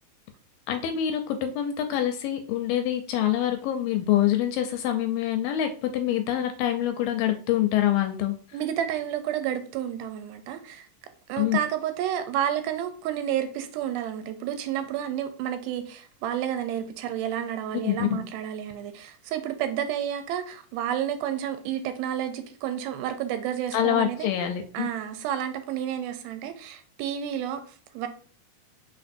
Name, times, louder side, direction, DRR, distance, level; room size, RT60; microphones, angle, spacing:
voice 1, 0.7-8.4 11.4-11.6 17.8-18.2 23.7-24.9, left 11 dB, 80° left, 2.1 m, -25 dB
voice 2, 8.5-10.9 11.3-24.3 24.7-28.1, right 10 dB, 85° right, 2.4 m, -30 dB
5.1 x 3.9 x 2.5 m
omnidirectional pair, 4.3 m